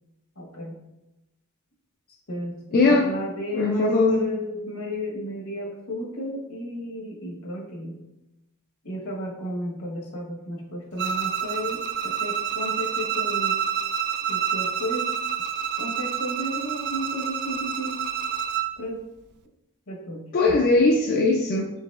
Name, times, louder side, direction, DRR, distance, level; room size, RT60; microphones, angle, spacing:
voice 1, 0.4-0.8 2.1-8.0 8.8-13.6 14.3-15.1 15.8-18.0 18.8-19.0 19.9-20.2, equal, 75° left, -1 dB, 1.2 m, -33 dB
voice 2, 2.7-3.1 3.5-4.2 20.3-21.7, left 3 dB, 45° left, -1 dB, 0.4 m, -20 dB
Bowed string instrument, 11.0-18.8, right 8 dB, 50° right, 0.3 m, -28 dB
4.6 x 3.9 x 2.4 m, 0.94 s
head